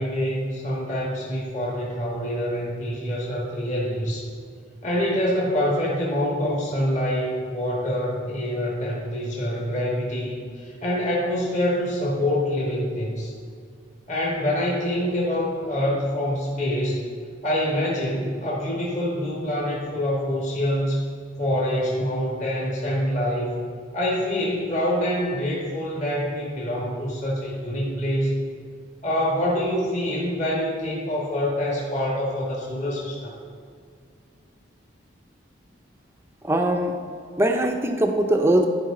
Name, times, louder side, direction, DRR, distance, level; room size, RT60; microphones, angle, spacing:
voice 1, 0.0-4.3 4.8-13.3 14.1-17.0 17.4-21.0 21.4-28.4 29.0-33.3, equal, 35° left, -5 dB, 1.6 m, -26 dB
voice 2, 36.4-37.0 37.4-38.7, right 1 dB, 15° right, 4 dB, 0.6 m, -21 dB
13.0 x 4.8 x 3.8 m, 2.2 s
head